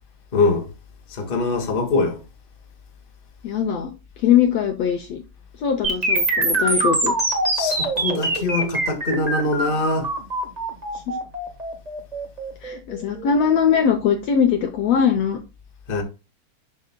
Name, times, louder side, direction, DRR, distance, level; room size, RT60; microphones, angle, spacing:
voice 1, 0.3-0.7 1.1-2.2 7.5-10.1 15.9-16.0, left 3 dB, 25° left, 1.1 m, -23 dB
voice 2, 3.4-3.9 4.2-5.2 5.6-7.1 11.1-11.2 12.6-15.4, left 7 dB, 70° left, 1.7 m, -21 dB
sound 1, 5.8-13.8, right 2 dB, 40° right, 0.5 m, -24 dB
11.5 x 5.4 x 2.2 m
omnidirectional pair, 3.6 m